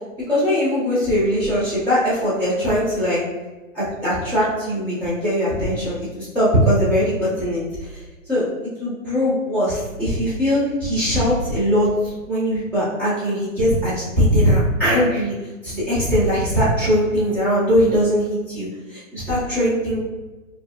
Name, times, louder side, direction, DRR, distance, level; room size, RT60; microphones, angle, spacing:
voice 1, 0.3-3.2 3.7-7.6 7.9-8.4 8.8-15.3 15.6-20.0, equal, 5° left, -11 dB, 0.7 m, -20 dB
4.6 x 2.7 x 2.4 m, 1.2 s
hypercardioid pair, 165°, 40 cm